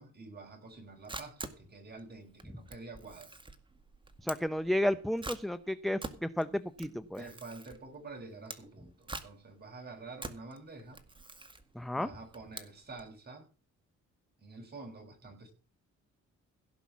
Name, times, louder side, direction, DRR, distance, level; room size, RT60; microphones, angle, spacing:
voice 1, 0.0-3.3 7.2-11.0 11.9-13.5 14.4-15.5, right 3 dB, 30° right, 2 dB, 6.3 m, -48 dB
Camera, 0.7-13.1, right 2 dB, 15° right, 2.0 m, -47 dB
voice 2, 4.2-7.2 11.7-12.1, left 1 dB, ahead, 14 dB, 0.6 m, -32 dB
16.5 x 5.9 x 7.2 m, 0.36 s
cardioid pair, 90°, 30 cm